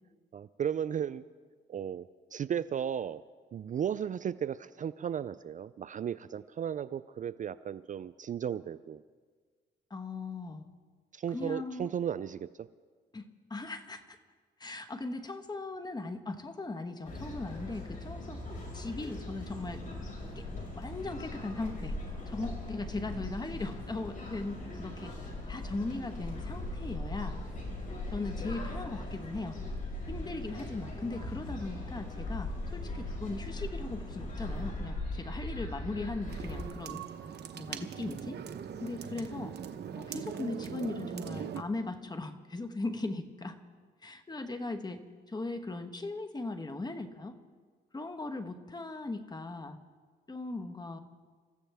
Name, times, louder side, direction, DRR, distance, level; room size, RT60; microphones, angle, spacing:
voice 1, 0.3-1.2 1.7-3.2 3.5-9.0 11.1-12.7, right 8 dB, 40° right, 15 dB, 0.4 m, -35 dB
voice 2, 9.9-10.6 11.3-11.9 13.1-14.2 14.6-18.4 18.7-19.8 20.3-20.5 20.8-22.0 22.3-25.1 25.5-27.4 28.1-29.6 30.1-37.0 37.5-38.4 38.8-39.6 40.0-43.6 44.0-47.4 47.9-49.8 50.3-51.0, left 2 dB, 20° left, 8 dB, 1.2 m, -38 dB
sound 1, 17.1-36.6, left 2 dB, 40° left, 5.6 m, -39 dB
sound 2, 36.3-41.6, right 8 dB, 55° right, 1.0 m, -41 dB
28.0 x 14.5 x 3.5 m, 1.5 s
cardioid pair, 90°, 20 cm